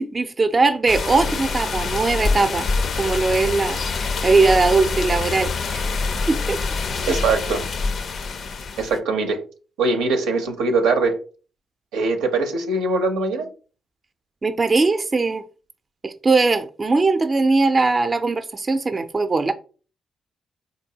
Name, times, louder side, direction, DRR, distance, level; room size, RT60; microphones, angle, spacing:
voice 1, 0.0-2.7 3.0-5.9 6.3-6.6 14.4-15.4 16.0-19.5, right 3 dB, 35° right, 0.4 m, -20 dB
sound 1, 0.9-9.0, left 4 dB, 65° left, 0.4 m, -25 dB
voice 2, 7.1-7.7 8.8-9.5 9.8-11.2 11.9-13.5, right 3 dB, 85° right, 0.6 m, -22 dB
3.8 x 2.6 x 2.7 m
supercardioid pair, 50°, 0 cm